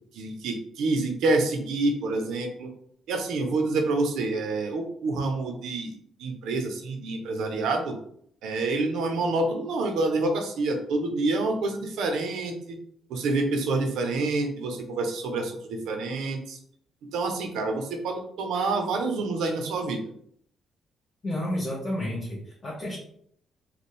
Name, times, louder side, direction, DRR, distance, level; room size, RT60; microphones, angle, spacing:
voice 1, 0.1-2.7 3.1-5.9 6.2-8.0 8.4-12.8 13.1-16.6 17.0-20.0, right 3 dB, 85° right, 4 dB, 0.8 m, -27 dB
voice 2, 21.2-23.0, left 1 dB, 40° left, -7 dB, 1.5 m, -31 dB
4.3 x 2.3 x 3.3 m, 0.66 s
cardioid pair, 90°, 0 cm